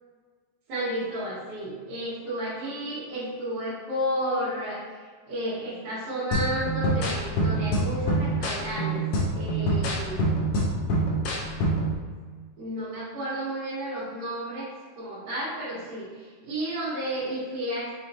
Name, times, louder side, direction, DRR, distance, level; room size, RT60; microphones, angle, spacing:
voice 1, 0.7-4.8 5.3-9.0 9.3-10.3 11.0-11.1 12.6-14.7 14.9-18.0, right 1 dB, 75° right, -12 dB, 2.9 m, -32 dB
sound 1, 6.3-12.0, right 1 dB, 80° left, 1.9 m, -26 dB
6.3 x 2.9 x 2.7 m, 1.5 s
omnidirectional pair, 4.3 m